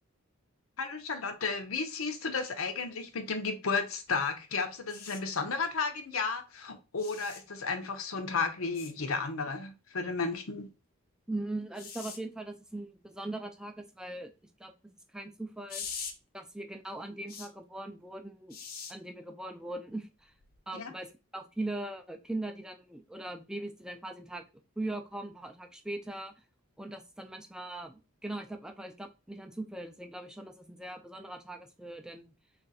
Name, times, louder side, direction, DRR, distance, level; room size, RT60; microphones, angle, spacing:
voice 1, 0.8-10.7 20.7-20.9, left 4 dB, 85° left, 0.7 m, -33 dB
sound 1, 4.9-5.2 7.0-7.4 8.7-8.9 11.8-12.2 15.7-16.1 17.3-17.5 18.5-18.9 20.4-20.6, left 6 dB, 45° left, 0.6 m, -42 dB
voice 2, 11.3-14.3 14.6-15.9 16.3-18.6 18.9-20.3 20.7-24.4 24.8-26.3 26.8-32.3, right 2 dB, 5° right, 0.4 m, -40 dB
3.3 x 2.5 x 4.0 m
head